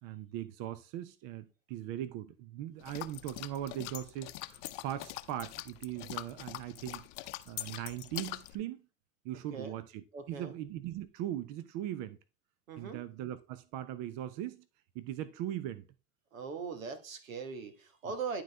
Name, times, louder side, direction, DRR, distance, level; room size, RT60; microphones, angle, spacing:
voice 1, 0.0-7.0 7.5-8.8 9.2-12.2 12.8-14.6 14.9-15.9, right 12 dB, 50° right, 0.7 m, -40 dB
sound 1, 2.8-8.5, left 18 dB, 65° left, 0.7 m, -43 dB
voice 2, 10.1-10.5 12.7-13.0 16.3-18.4, right 5 dB, 85° right, 1.3 m, -40 dB
11.5 x 3.9 x 3.3 m
hypercardioid pair, 85°, 39 cm